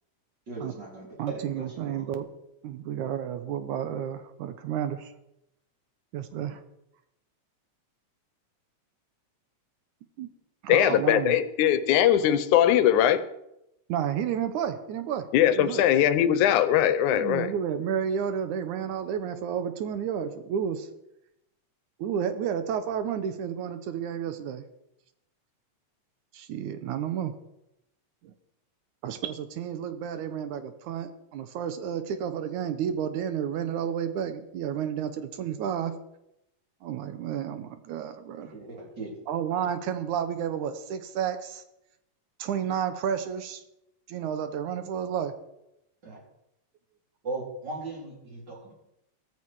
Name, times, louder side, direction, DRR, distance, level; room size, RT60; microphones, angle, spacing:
voice 1, 0.5-2.0 38.4-39.2 46.0-46.2 47.2-48.7, right 3 dB, 35° right, -3 dB, 4.7 m, -38 dB
voice 2, 1.2-2.3 2.6-5.1 6.1-6.6 10.2-10.3 10.6-11.4 13.9-15.3 15.6-15.8 17.1-20.9 22.0-24.6 26.3-27.3 28.2-28.3 29.0-35.9 36.8-38.5 39.3-41.6 42.4-43.6 44.1-45.3, right 8 dB, 85° right, 10 dB, 2.5 m, -31 dB
voice 3, 10.7-13.2 15.3-17.5, left 11 dB, 85° left, 13 dB, 2.3 m, -21 dB
15.5 x 14.5 x 4.8 m, 0.85 s
omnidirectional pair, 3.4 m